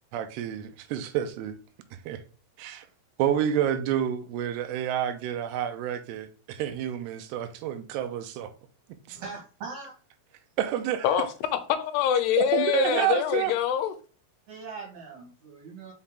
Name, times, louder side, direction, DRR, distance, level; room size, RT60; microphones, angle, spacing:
voice 1, 0.1-1.5 2.1-2.2 2.6-2.9 3.2-8.5 9.1-9.2 10.6-11.1 12.4-13.5, right 10 dB, 90° right, 2.9 m, -29 dB
voice 2, 9.1-9.9 14.5-15.9, right 4 dB, 50° right, 2.7 m, -41 dB
voice 3, 11.7-13.9, left 10 dB, 85° left, 2.8 m, -24 dB
5.8 x 5.4 x 3.7 m
omnidirectional pair, 4.7 m